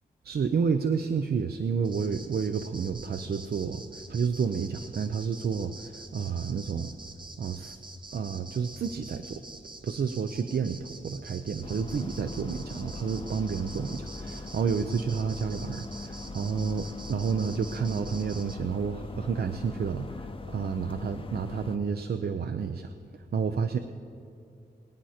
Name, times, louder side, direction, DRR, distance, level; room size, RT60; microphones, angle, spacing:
voice 1, 0.2-7.0 7.4-7.8 8.1-9.4 9.8-22.9 23.3-23.8, right 6 dB, 65° right, 8 dB, 0.6 m, -30 dB
sound 1, 1.8-18.6, right 2 dB, 25° right, 0.9 m, -47 dB
sound 2, 11.6-21.8, left 3 dB, 30° left, 0.7 m, -41 dB
23.5 x 9.4 x 4.4 m, 2.6 s
wide cardioid pair, 105°, 18 cm